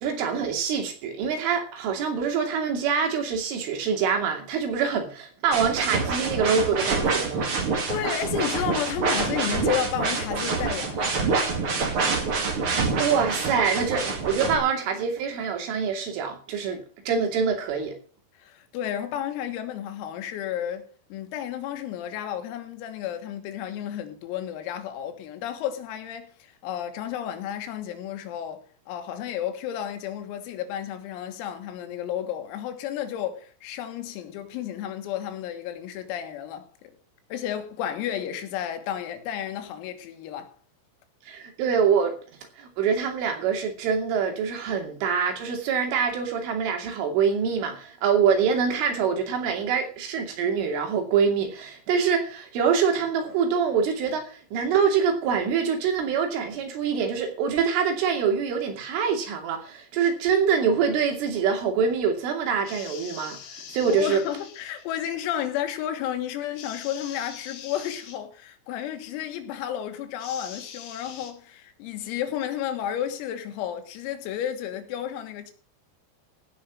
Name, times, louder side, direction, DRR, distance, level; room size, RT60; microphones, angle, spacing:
voice 1, 0.0-7.5 12.6-18.0 41.3-42.2 42.6-64.2, right 6 dB, 70° right, 5.0 m, -25 dB
sound 1, 5.5-14.6, right 4 dB, 45° right, 1.8 m, -26 dB
voice 2, 7.9-11.2 18.4-37.0 37.3-40.6 63.9-75.5, left 10 dB, 85° left, 4.3 m, -32 dB
sound 2, 62.6-64.8 66.5-68.2 70.2-71.3, left 8 dB, 60° left, 3.2 m, -43 dB
16.5 x 6.2 x 7.0 m
omnidirectional pair, 6.0 m